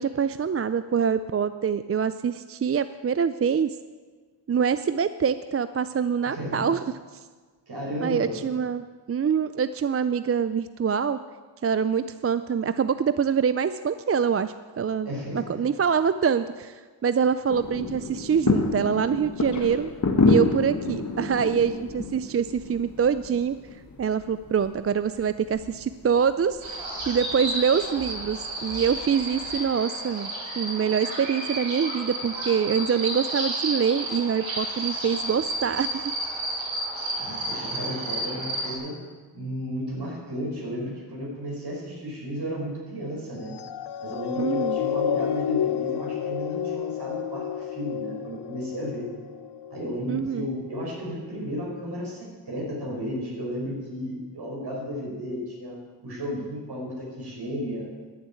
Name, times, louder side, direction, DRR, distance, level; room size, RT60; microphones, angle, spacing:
voice 1, 0.0-3.8 4.5-6.8 7.1-7.2 8.0-11.2 11.6-19.9 20.3-23.6 24.0-36.1 44.4-44.8 50.1-50.5, right 7 dB, 30° right, 13 dB, 0.4 m, -25 dB
voice 2, 6.2-6.7 7.7-8.5 15.1-15.6 37.2-39.1 39.3-43.6 44.0-49.1 49.7-55.8 56.0-57.9, equal, 55° right, -2 dB, 5.3 m, -33 dB
sound 1, 17.5-29.6, left 3 dB, 40° left, 1.7 m, -29 dB
sound 2, 26.6-38.7, right 1 dB, 90° right, 3.1 m, -32 dB
sound 3, 43.5-50.2 50.8-50.9, left 9 dB, 60° left, 0.6 m, -30 dB
12.0 x 7.2 x 9.0 m, 1.4 s
cardioid pair, 65°, 46 cm